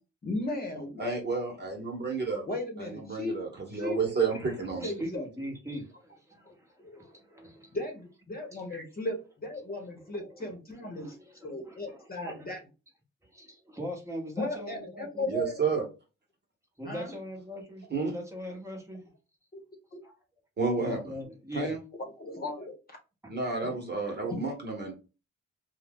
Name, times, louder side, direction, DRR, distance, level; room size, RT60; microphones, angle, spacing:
voice 1, 0.2-1.2 2.5-3.4 3.7-4.3 4.8-5.3 6.4-6.5 6.8-7.1 7.7-11.2 11.4-12.6 14.4-15.6 16.8-17.1 19.5-19.6 19.9-20.0 22.0-22.7 23.6-23.7 24.2-24.4 24.8-24.9, left 2 dB, 30° left, 2 dB, 1.1 m, -36 dB
voice 2, 1.0-2.5 2.8-4.9 8.7-8.8 15.3-15.8 17.9-18.1 20.6-21.0 21.5-21.8 23.3-24.9, right 4 dB, 35° right, 1 dB, 1.3 m, -31 dB
voice 3, 4.3-7.8 8.5-8.6 10.0-10.5 10.9-12.5 13.2-15.3 16.8-19.0 20.0-20.1 20.8-21.8 23.2-23.3, equal, 10° right, 1 dB, 1.1 m, -41 dB
2.6 x 2.4 x 3.6 m, 0.30 s
cardioid pair, 90°, 30 cm